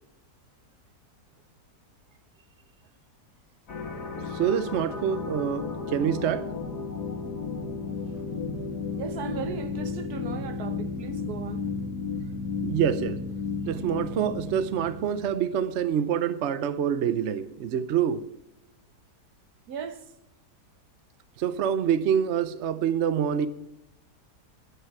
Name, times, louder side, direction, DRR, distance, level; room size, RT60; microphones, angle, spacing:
sound 1, 3.7-15.4, left 4 dB, 80° left, 2.4 m, -33 dB
voice 1, 4.3-5.7 5.9-6.4 12.6-13.2 13.7-18.2 21.4-23.5, right 8 dB, 55° right, 0.8 m, -26 dB
voice 2, 9.0-11.8 19.7-20.0, right 6 dB, 70° right, 1.5 m, -37 dB
13.5 x 11.5 x 4.7 m
omnidirectional pair, 1.7 m